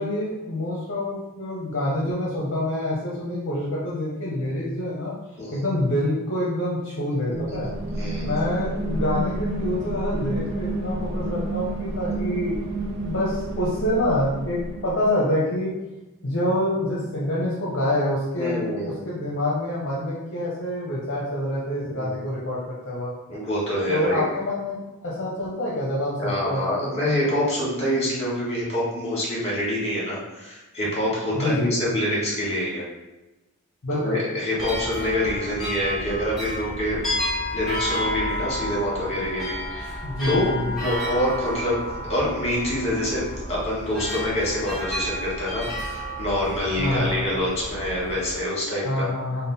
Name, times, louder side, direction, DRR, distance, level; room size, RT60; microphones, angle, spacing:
voice 1, 0.0-5.1 5.5-7.7 8.2-12.6 13.0-15.7 16.2-23.1 23.9-26.9 31.3-31.8 33.8-34.2 40.0-40.8 46.8-47.3 48.8-49.5, left 1 dB, 55° left, -6 dB, 0.7 m, -26 dB
voice 2, 7.3-8.4 18.3-19.1 21.8-22.2 23.3-24.2 26.2-32.8 33.9-37.0 37.5-40.5 40.8-41.8 42.1-43.2 43.5-49.1, left 1 dB, 30° left, -6 dB, 1.5 m, -26 dB
sound 1, 7.3-15.1, right 1 dB, 55° right, 0.6 m, -30 dB
sound 2, 34.6-48.4, equal, ahead, 1.0 m, -31 dB
3.6 x 2.1 x 3.9 m, 1.0 s
head